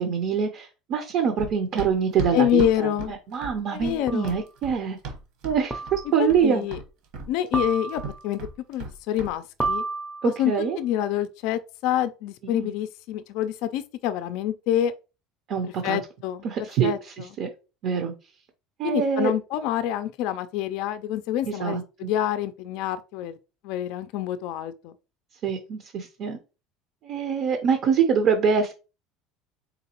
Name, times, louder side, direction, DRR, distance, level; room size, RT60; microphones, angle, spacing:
voice 1, 0.0-5.0 5.4-6.6 10.2-10.8 12.4-12.7 15.5-16.0 16.4-17.5 17.8-18.1 18.8-19.3 21.5-22.1 25.4-26.4 27.0-28.7, right 7 dB, 50° right, 0.6 m, -25 dB
Run, 1.4-5.6 5.9-6.5 6.7-9.3 9.6-9.8, right 4 dB, 65° right, 1.1 m, -36 dB
voice 2, 2.3-3.1 3.7-4.4 6.2-6.8 7.3-9.8 10.2-14.9 15.8-16.4 16.8-17.3 18.8-23.4 23.6-24.9, left 11 dB, 65° left, 0.3 m, -27 dB
sound 1, 2.5-2.6 4.1-4.4 5.7-6.3 7.5-8.3 9.6-10.5, right 3 dB, 10° right, 0.5 m, -31 dB
3.9 x 3.8 x 2.9 m
cardioid pair, 145°, 0 cm